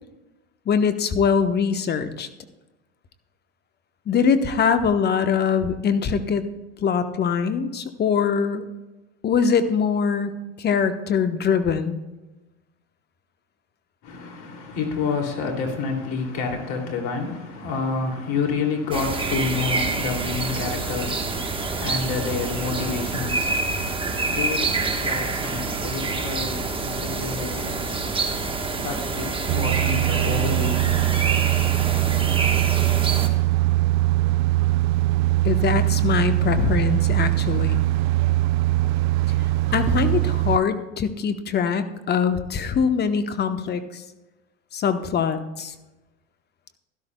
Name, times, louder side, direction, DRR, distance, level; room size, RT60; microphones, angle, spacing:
voice 1, 0.7-2.3 4.1-6.4 6.8-8.6 9.2-12.0 35.4-37.8 39.7-44.0 44.7-45.7, left 6 dB, 25° left, 1.0 m, -23 dB
voice 2, 14.0-28.5 28.8-31.0, left 4 dB, 55° left, 2.8 m, -29 dB
sound 1, 18.9-33.3, right 3 dB, 15° right, 1.3 m, -27 dB
sound 2, 29.5-40.6, right 17 dB, 50° right, 0.6 m, -21 dB
16.5 x 12.5 x 2.3 m
hypercardioid pair, 100°, 37 cm